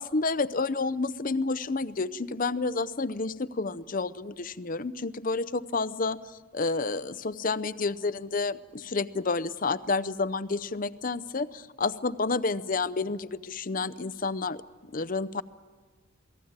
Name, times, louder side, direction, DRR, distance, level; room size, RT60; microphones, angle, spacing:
voice 1, 0.0-6.2 6.5-14.6 14.9-15.4, left 3 dB, 40° left, 14 dB, 0.7 m, -30 dB
28.0 x 19.0 x 8.9 m, 1.5 s
head